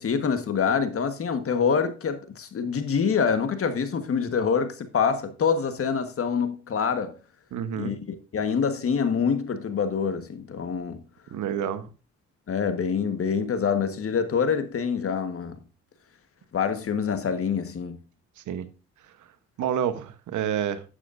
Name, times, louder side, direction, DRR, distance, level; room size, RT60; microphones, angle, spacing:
voice 1, 0.0-7.1 7.8-11.0 12.5-15.6 16.5-18.0, left 6 dB, 50° left, 1.4 m, -26 dB
voice 2, 7.5-7.9 11.3-11.9 18.5-18.7 19.6-20.8, right 9 dB, 75° right, 1.1 m, -28 dB
11.5 x 8.2 x 2.6 m
cardioid pair, 90°, 30 cm